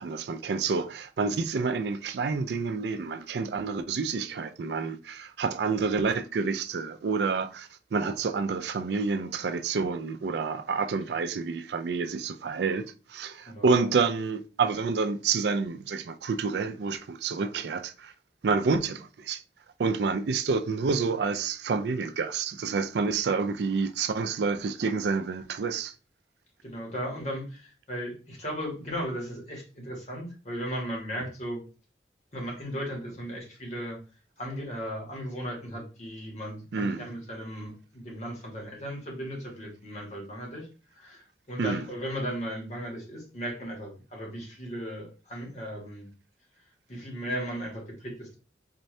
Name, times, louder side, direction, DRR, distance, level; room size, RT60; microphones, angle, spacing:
voice 1, 0.0-18.1 18.4-19.4 19.8-25.9 36.7-37.1 41.6-41.8, right 4 dB, 70° right, 0.4 m, -28 dB
voice 2, 26.6-31.6 32.3-34.0 34.4-46.1 46.6-48.4, equal, 40° left, 1.6 m, -36 dB
4.4 x 2.7 x 3.2 m
head